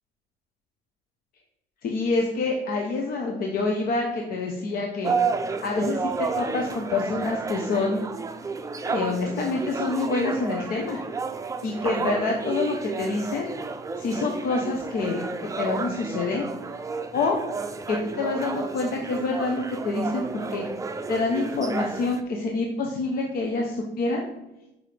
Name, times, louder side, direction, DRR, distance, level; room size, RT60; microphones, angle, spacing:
voice 1, 1.8-5.1 5.6-8.1 8.8-11.0 11.6-13.5 14.0-15.3 15.6-16.5 17.1-17.4 17.9-20.6 21.1-24.3, left 3 dB, 60° left, 1 dB, 1.0 m, -27 dB
sound 1, 5.0-22.2, right 4 dB, 20° right, 0.5 m, -31 dB
5.5 x 5.0 x 5.0 m, 0.93 s
cardioid pair, 110°, 17 cm